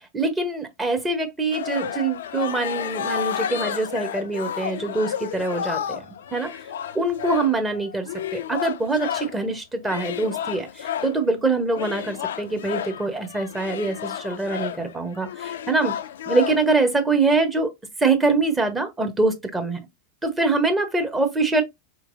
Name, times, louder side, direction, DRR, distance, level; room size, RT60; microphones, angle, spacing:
voice 1, 0.1-6.0 6.3-6.5 6.9-15.9 16.3-17.7 18.0-19.8 20.2-21.6, right 3 dB, 15° right, 1.0 m, -24 dB
sound 1, 1.5-9.4 9.8-11.2 11.7-16.8, left 9 dB, 65° left, 0.4 m, -31 dB
4.2 x 3.2 x 2.5 m
figure-of-eight pair, 90°, 0 cm